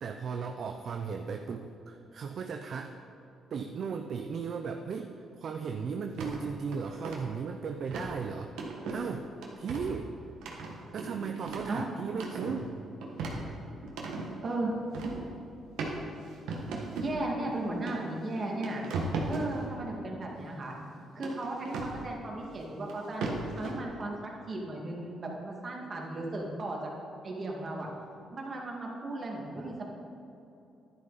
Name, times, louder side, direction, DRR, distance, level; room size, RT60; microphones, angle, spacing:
voice 1, 0.0-2.9 3.5-8.5 8.9-10.1 10.9-12.8 17.1-17.6, right 6 dB, 60° right, 5 dB, 0.6 m, -36 dB
sound 1, 6.2-6.4 6.7-7.2 7.9-8.1 8.6-9.0 9.4-9.9 10.4-11.7 12.1-12.6 13.0-14.3 14.9-15.2 15.8-15.9 16.5-17.2 17.9-18.0 18.4-19.5 21.2-22.0 22.9-23.0 23.2-23.7, right 3 dB, 85° right, 1.6 m, -36 dB
voice 2, 14.4-14.8 17.0-18.8 19.3-20.8 21.1-23.2 23.5-26.8 27.2-27.9 28.3-29.9, right 2 dB, 40° right, -1 dB, 2.2 m, -36 dB
11.0 x 10.5 x 4.2 m, 2.9 s
cardioid pair, 90°, 0 cm